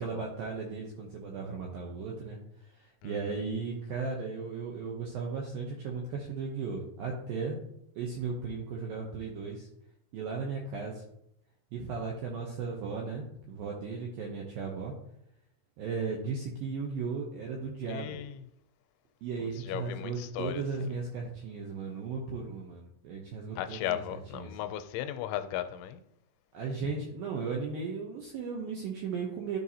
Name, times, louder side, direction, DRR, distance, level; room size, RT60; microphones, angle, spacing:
voice 1, 0.0-2.4 2.8-7.6 8.0-9.7 10.1-11.0 11.7-14.9 15.8-18.2 19.2-24.0 24.3-24.5 26.5-29.6, right 4 dB, 80° right, 2.1 m, -36 dB
voice 2, 3.0-3.3 17.9-18.4 19.4-20.9 23.6-26.0, left 12 dB, 85° left, 2.9 m, -37 dB
12.5 x 4.5 x 2.8 m
omnidirectional pair, 5.2 m